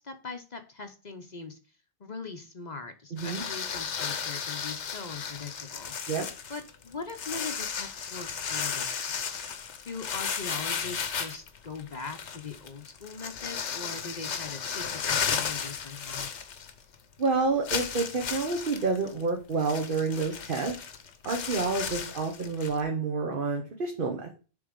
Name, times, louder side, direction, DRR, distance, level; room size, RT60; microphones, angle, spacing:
voice 1, 0.0-1.6 2.0-5.9 6.5-9.4 9.8-16.3, left 4 dB, 40° left, 6 dB, 0.8 m, -41 dB
voice 2, 3.1-3.4 6.1-6.3 17.2-20.8 21.2-24.4, right 4 dB, 50° right, 2 dB, 1.2 m, -29 dB
sound 1, 3.2-16.9 17.2-17.3 17.6-22.8, left 7 dB, 75° left, 1.2 m, -34 dB
7.2 x 4.0 x 5.1 m, 0.35 s
omnidirectional pair, 1.2 m